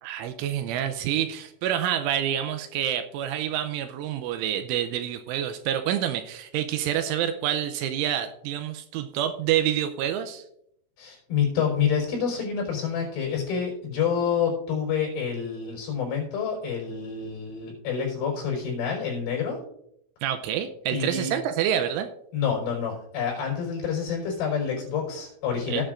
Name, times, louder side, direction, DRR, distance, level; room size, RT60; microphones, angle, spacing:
voice 1, 0.0-10.4 20.2-22.1 25.7-25.8, right 10 dB, 85° right, 8 dB, 2.9 m, -27 dB
voice 2, 11.0-19.6 20.9-21.3 22.3-25.8, left 7 dB, 60° left, -1 dB, 6.1 m, -28 dB
17.5 x 8.9 x 2.5 m, 0.76 s
omnidirectional pair, 5.9 m